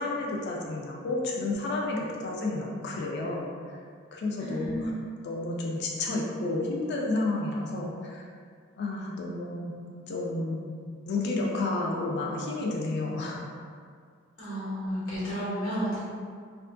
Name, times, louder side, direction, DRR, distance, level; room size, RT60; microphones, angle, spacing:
voice 1, 0.0-3.5 4.1-4.9 5.2-8.2 8.8-9.8 10.1-10.7 11.0-13.4, left 2 dB, 55° left, -2 dB, 0.3 m, -31 dB
voice 2, 4.4-5.0 14.4-16.0, equal, 90° left, -9 dB, 1.0 m, -32 dB
2.5 x 2.3 x 2.4 m, 2.1 s
head